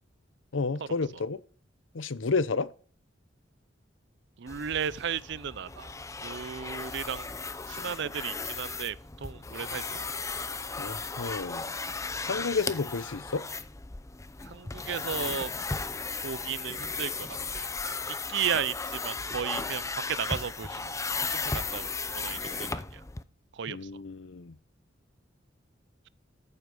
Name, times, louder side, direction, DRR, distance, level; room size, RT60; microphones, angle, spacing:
voice 1, 0.5-1.4 1.9-2.7 10.8-11.6 12.2-13.4 23.7-24.5, left 4 dB, 90° left, 0.7 m, -31 dB
voice 2, 4.4-5.9 6.2-7.3 7.7-10.2 14.4-15.5 16.2-17.7 18.1-19.8 20.1-20.9 21.2-23.0 23.5-23.8, right 8 dB, 65° right, 0.5 m, -35 dB
sound 1, 4.5-23.2, left 4 dB, 15° left, 0.6 m, -36 dB
13.5 x 8.0 x 5.4 m
head